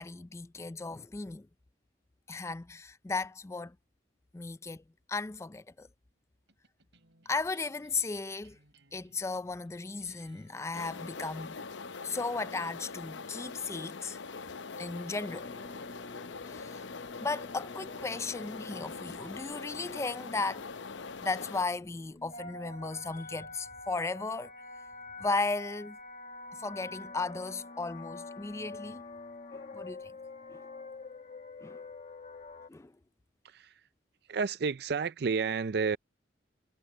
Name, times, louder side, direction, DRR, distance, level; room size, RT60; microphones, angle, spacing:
voice 1, 0.0-1.5 2.3-3.8 4.3-4.8 5.1-5.9 7.3-8.6 8.9-11.6 12.0-14.2 14.8-15.6 16.5-16.8 17.2-20.6 20.9-24.5 25.2-26.0 26.6-29.0 29.5-30.1 30.5-30.6 31.6-31.8 32.7-32.9, left 3 dB, 15° left, 0.3 m, -36 dB
sound 1, 6.5-17.1, right 2 dB, 85° right, 4.0 m, -66 dB
sound 2, 10.7-21.6, left 4 dB, 85° left, 0.7 m, -43 dB
sound 3, 15.3-32.7, left 3 dB, 40° left, 1.3 m, -47 dB
voice 2, 33.4-33.8 34.3-36.0, right 5 dB, 60° right, 0.4 m, -31 dB
head